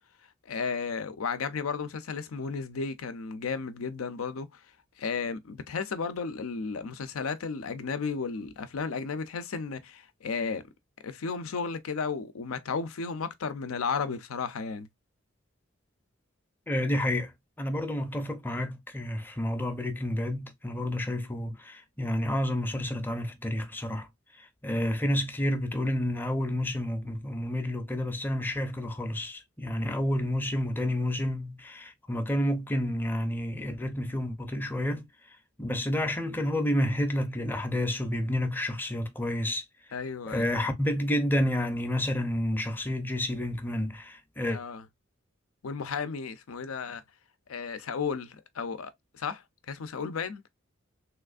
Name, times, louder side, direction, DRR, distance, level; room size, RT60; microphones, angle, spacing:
voice 1, 0.5-4.6 5.0-10.6 11.0-14.9 39.9-40.5 44.5-44.8 45.6-47.0 47.5-50.4, left 5 dB, 90° left, 0.5 m, -34 dB
voice 2, 16.7-17.3 17.6-24.1 24.4-35.1 35.6-39.6 40.3-44.6, left 1 dB, 10° left, 0.5 m, -30 dB
3.3 x 3.1 x 2.3 m
head